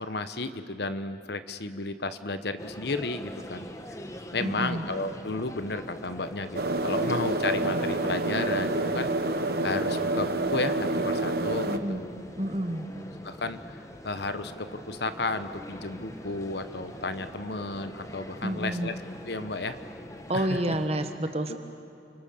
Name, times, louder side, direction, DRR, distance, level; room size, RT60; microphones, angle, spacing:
voice 1, 0.0-3.7 4.3-9.1 9.6-12.1 13.2-18.9 19.3-19.8 20.3-20.6 21.5-21.6, left 3 dB, 60° left, 11 dB, 1.1 m, -33 dB
sound 1, 2.6-20.9, equal, 15° left, 1.2 m, -43 dB
voice 2, 4.4-4.8 11.7-12.1 12.4-12.8 18.4-18.9 20.3-21.6, right 1 dB, 35° right, 7 dB, 1.5 m, -29 dB
sound 2, 6.5-11.8, right 2 dB, 55° right, 1.1 m, -28 dB
30.0 x 24.5 x 6.8 m, 2.8 s
head